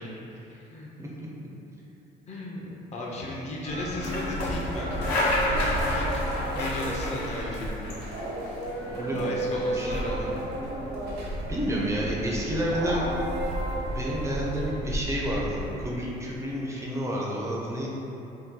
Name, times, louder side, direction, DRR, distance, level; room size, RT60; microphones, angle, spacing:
voice 1, 0.0-1.0 2.3-5.0 5.4-6.2 6.5-8.0 9.1-10.4, left 2 dB, 40° left, -3 dB, 0.5 m, -36 dB
voice 2, 1.0-1.5 8.9-10.1 11.5-13.1 13.9-17.9, equal, 15° right, -4 dB, 0.4 m, -30 dB
sound 1, 3.6-14.8, right 1 dB, 70° right, 0.7 m, -34 dB
sound 2, 3.7-15.9, equal, 80° left, 0.8 m, -32 dB
2.7 x 2.2 x 3.6 m, 3.0 s
cardioid pair, 110°, 17 cm